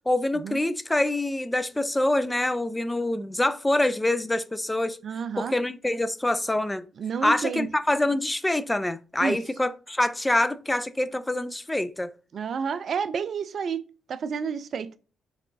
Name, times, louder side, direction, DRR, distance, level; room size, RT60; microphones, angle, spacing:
voice 1, 0.1-5.0 5.4-6.8 7.2-12.1, left 1 dB, 15° left, 0.4 m, -25 dB
voice 2, 5.0-5.5 7.0-7.7 9.2-9.4 12.3-13.8 14.1-14.9, right 6 dB, 60° right, 0.4 m, -30 dB
4.2 x 4.1 x 2.7 m
hypercardioid pair, 50°, 0 cm